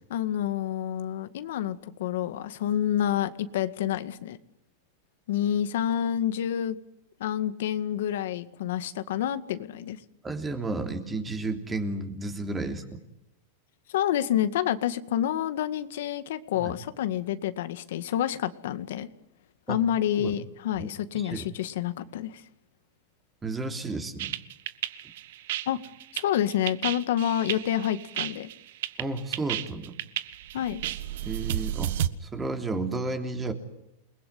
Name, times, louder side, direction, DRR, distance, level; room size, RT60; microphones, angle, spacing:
voice 1, 0.1-4.4 5.3-6.8 7.2-10.0 13.9-19.1 19.7-22.4 25.7-25.8 26.1-28.5 30.5-30.8, left 11 dB, 75° left, 11 dB, 1.9 m, -28 dB
voice 2, 10.2-12.8 16.6-16.7 19.7-19.8 20.2-20.3 20.8-20.9 21.1-21.5 23.4-24.3 29.0-30.0 31.2-31.9 32.2-33.5, right 3 dB, 15° right, 6 dB, 3.1 m, -32 dB
sound 1, 24.2-32.1, right 12 dB, 65° right, 1.5 m, -32 dB
29.0 x 21.0 x 9.5 m, 0.81 s
supercardioid pair, 155°, 0 cm